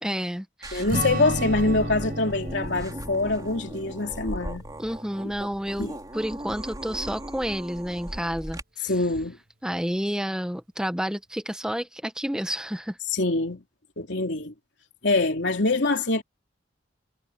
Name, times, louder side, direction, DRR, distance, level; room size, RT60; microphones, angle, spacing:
voice 1, 0.0-0.9 4.8-8.9 9.6-13.0, equal, 5° right, 1.1 m, -30 dB
sound 1, 0.6-8.6, right 1 dB, 20° right, 3.5 m, -37 dB
voice 2, 0.7-4.6 5.8-5.9 8.8-9.4 13.1-13.6 14.0-14.5 15.0-16.2, left 2 dB, 70° left, 3.3 m, -24 dB
Strum, 0.9-5.6, right 1 dB, 55° right, 5.6 m, -34 dB
head